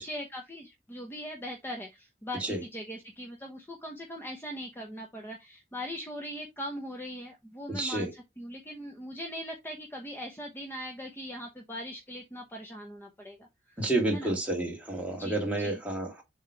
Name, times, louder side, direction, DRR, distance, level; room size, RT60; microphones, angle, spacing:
voice 1, 0.0-13.9 14.1-14.3 15.2-15.8, equal, 10° left, 0.9 m, -40 dB
voice 2, 7.7-8.1 13.8-16.2, right 2 dB, 5° right, 1.9 m, -30 dB
7.3 x 3.1 x 4.5 m
head